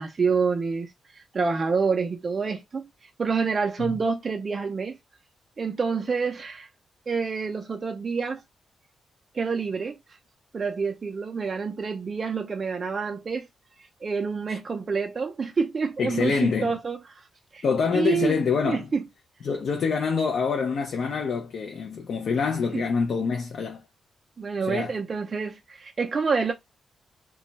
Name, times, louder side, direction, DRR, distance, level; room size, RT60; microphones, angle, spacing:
voice 1, 0.0-2.9 3.2-5.0 5.6-6.7 7.1-8.4 9.3-10.0 10.5-13.5 14.0-17.2 17.5-17.6 17.9-18.4 18.7-19.0 22.7-22.8 24.4-26.5, right 5 dB, 30° right, 0.3 m, -27 dB
voice 2, 16.0-16.8 17.6-18.9 19.4-23.8 24.6-24.9, left 5 dB, 55° left, 0.4 m, -26 dB
2.2 x 2.0 x 3.8 m
wide cardioid pair, 170°, 0 cm